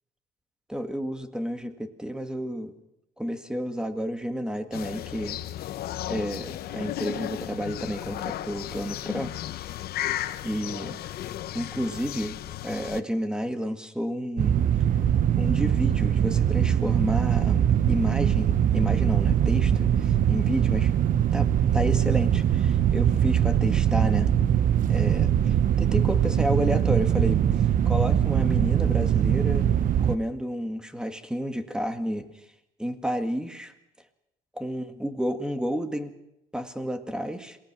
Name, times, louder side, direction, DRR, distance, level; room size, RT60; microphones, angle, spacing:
voice 1, 0.7-2.7 3.2-5.4 6.1-9.3 9.6-9.7 10.4-11.0 11.5-12.4 12.6-14.6 15.3-20.9 21.3-24.3 24.9-29.7 30.0-32.4 32.8-33.7 34.6-36.1 36.5-37.6, equal, 5° right, 8 dB, 1.9 m, -31 dB
sound 1, 4.7-13.0, left 13 dB, 65° left, 0.9 m, -34 dB
sound 2, 14.4-30.2, right 9 dB, 55° right, 0.9 m, -22 dB
27.0 x 18.5 x 6.2 m, 0.88 s
cardioid pair, 110°, 17 cm